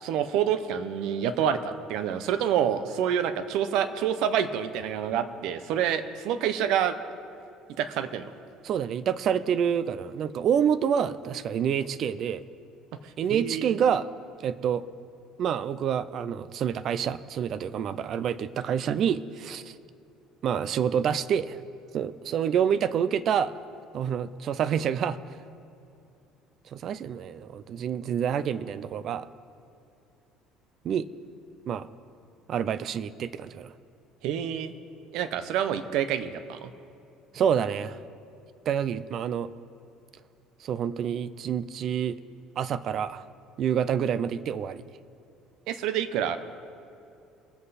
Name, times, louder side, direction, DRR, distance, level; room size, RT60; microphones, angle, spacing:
voice 1, 0.0-7.0 7.8-8.3 13.0-13.8 34.2-34.7 35.1-36.7 45.7-46.4, right 9 dB, 70° right, 11 dB, 0.8 m, -27 dB
voice 2, 8.6-12.4 13.2-14.1 14.4-14.8 15.4-19.7 20.4-21.6 21.9-23.5 23.9-25.2 26.7-29.3 30.8-31.1 31.7-31.9 32.5-33.7 37.3-38.0 38.7-39.5 40.6-42.2 42.6-43.3 43.6-44.8, right 8 dB, 45° right, 15 dB, 0.5 m, -27 dB
22.5 x 7.9 x 4.2 m, 2.6 s
cardioid pair, 130°, 0 cm